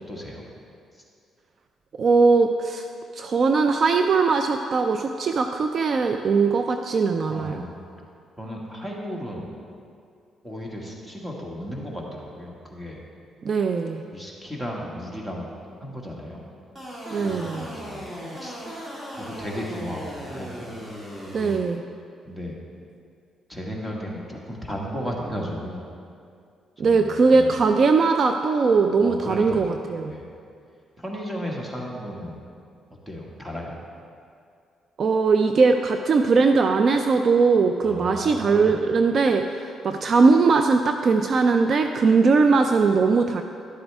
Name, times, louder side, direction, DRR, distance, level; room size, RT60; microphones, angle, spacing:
voice 1, 0.1-0.5 7.3-7.8 8.4-9.5 10.4-13.0 14.1-15.5 15.8-16.5 17.1-18.1 18.4-18.6 19.2-20.6 22.3-22.6 23.5-25.8 26.8-27.6 29.0-29.7 30.1-30.2 31.0-32.4 33.1-33.8 37.8-38.7, equal, 10° right, -2 dB, 1.8 m, -34 dB
voice 2, 2.0-2.9 3.1-7.6 13.4-14.0 17.1-17.6 21.3-21.8 26.8-30.2 35.0-43.4, right 4 dB, 50° right, 6 dB, 0.4 m, -20 dB
sound 1, 16.8-21.6, equal, 25° right, 2.2 m, -37 dB
11.5 x 7.9 x 3.5 m, 2.4 s
cardioid pair, 90°, 0 cm